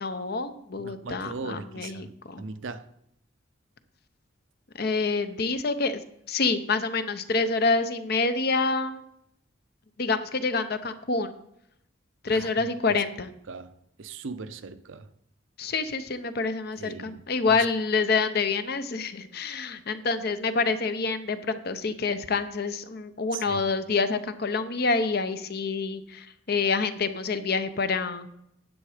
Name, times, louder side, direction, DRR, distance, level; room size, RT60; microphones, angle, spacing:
voice 1, 0.0-2.4 4.8-6.0 6.3-9.0 10.0-11.3 12.2-13.3 15.6-28.3, left 4 dB, 50° left, 0.7 m, -27 dB
voice 2, 0.8-2.1 2.4-2.9 12.3-13.0 13.5-13.7 14.0-15.1 16.8-17.7 23.3-23.6, right 4 dB, 70° right, 0.6 m, -39 dB
9.8 x 7.6 x 5.0 m
head